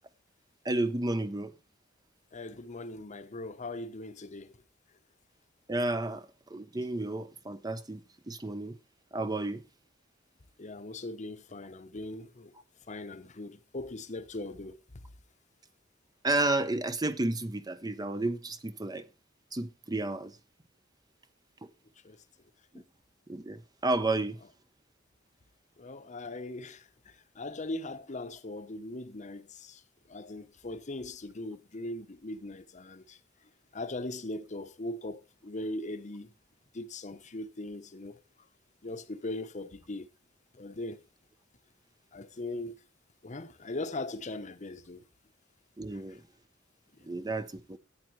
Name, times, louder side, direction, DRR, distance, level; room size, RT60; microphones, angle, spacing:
voice 1, 0.6-1.5 5.7-8.0 8.3-8.8 9.1-9.6 16.2-19.0 19.5-20.3 21.6-21.7 22.7-22.8 23.3-24.4 45.8-46.2 47.0-47.8, right 2 dB, 20° right, 0.7 m, -31 dB
voice 2, 2.3-4.5 10.6-12.5 12.9-14.8 22.0-22.2 25.8-29.8 30.1-33.2 33.7-36.3 36.7-38.2 38.8-40.1 40.5-41.0 42.1-42.7 43.2-45.0 45.9-46.0, left 2 dB, 40° left, 0.9 m, -40 dB
14.0 x 8.9 x 3.2 m
head